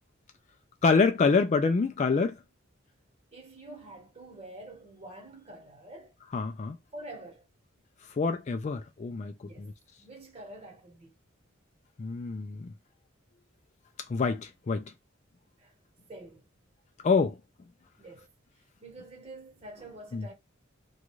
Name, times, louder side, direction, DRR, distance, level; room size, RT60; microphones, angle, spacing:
voice 1, 0.8-2.4 6.3-6.8 8.1-9.7 12.0-12.7 14.1-14.8 17.0-17.4 20.1-20.3, left 4 dB, 35° left, 0.3 m, -26 dB
voice 2, 3.3-6.1 6.9-7.4 9.4-9.7 10.0-11.1 15.6-15.7 16.1-16.5 18.0-18.3 18.8-20.3, right 1 dB, 30° right, 1.0 m, -47 dB
2.5 x 2.3 x 3.0 m
head